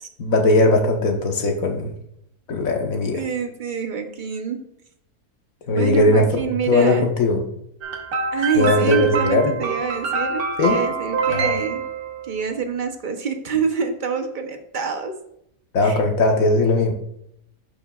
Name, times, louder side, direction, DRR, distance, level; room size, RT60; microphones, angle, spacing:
voice 1, 0.2-1.9 2.5-3.2 5.7-6.4 6.7-7.4 8.5-9.6 10.6-10.8 11.3-11.6 15.7-16.9, left 2 dB, 60° left, 3 dB, 1.4 m, -19 dB
voice 2, 3.1-4.6 5.7-7.1 8.3-11.8 12.2-15.1 15.8-16.0, right 5 dB, 45° right, 6 dB, 0.7 m, -26 dB
sound 1, 7.8-12.4, right 5 dB, 70° right, 1.6 m, -25 dB
11.0 x 5.4 x 2.4 m, 0.74 s
omnidirectional pair, 1.7 m